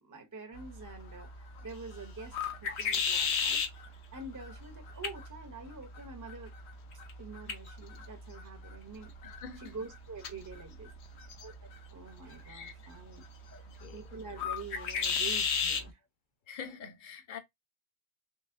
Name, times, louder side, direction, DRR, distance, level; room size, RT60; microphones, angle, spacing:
voice 1, 0.0-2.4 2.6-6.5 7.2-9.1 9.6-10.9 11.4-11.5 11.9-13.2 13.9-16.0, right 4 dB, 25° right, 0.5 m, -46 dB
sound 1, 0.5-15.9, left 6 dB, 80° left, 1.0 m, -37 dB
voice 2, 9.2-9.8 12.4-12.9 13.5-14.0 16.5-17.4, left 6 dB, 55° left, 0.8 m, -46 dB
3.9 x 3.0 x 2.5 m
omnidirectional pair, 1.1 m